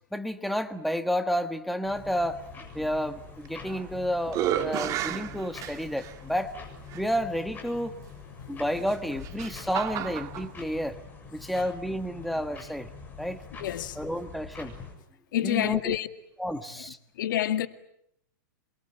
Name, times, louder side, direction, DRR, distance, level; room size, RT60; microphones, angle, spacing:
voice 1, 0.1-2.4 2.7-6.5 6.9-8.0 8.5-11.0 11.3-12.9 13.2-13.4 14.0-14.7 15.4-15.9 16.4-17.0, equal, ahead, 1.4 m, -30 dB
sound 1, 1.8-14.9, left 4 dB, 15° left, 7.1 m, -45 dB
sound 2, 3.4-3.9 4.3-6.1 6.9-7.0 8.8-10.5, right 11 dB, 30° right, 1.7 m, -32 dB
voice 2, 13.6-14.0 15.3-16.1 17.2-17.7, left 11 dB, 70° left, 2.0 m, -28 dB
28.0 x 23.0 x 9.1 m
hypercardioid pair, 145°, 11 cm